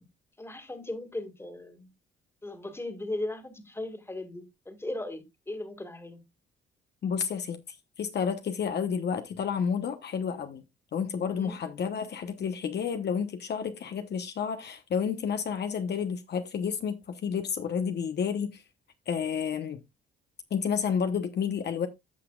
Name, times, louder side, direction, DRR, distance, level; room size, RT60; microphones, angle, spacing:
voice 1, 0.4-1.9 2.4-6.2 11.3-11.6, left 1 dB, 10° left, 2.0 m, -37 dB
voice 2, 7.0-7.6 8.0-10.6 10.9-17.0 17.2-18.6 19.1-19.8 20.5-21.9, left 7 dB, 55° left, 1.0 m, -30 dB
15.0 x 5.9 x 2.4 m
cardioid pair, 90°, 20 cm